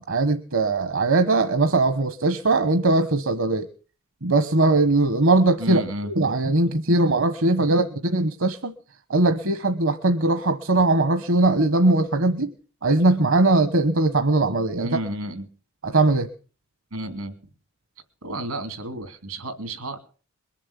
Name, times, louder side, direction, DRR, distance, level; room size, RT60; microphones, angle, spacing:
voice 1, 0.0-3.7 4.2-8.7 9.1-12.5 12.8-14.9 15.8-16.3, right 2 dB, 65° right, 10 dB, 1.1 m, -20 dB
voice 2, 5.6-6.1 14.8-15.5 16.9-17.4 18.2-20.0, right 1 dB, 85° right, 9 dB, 3.0 m, -31 dB
22.0 x 7.5 x 8.2 m, 0.40 s
head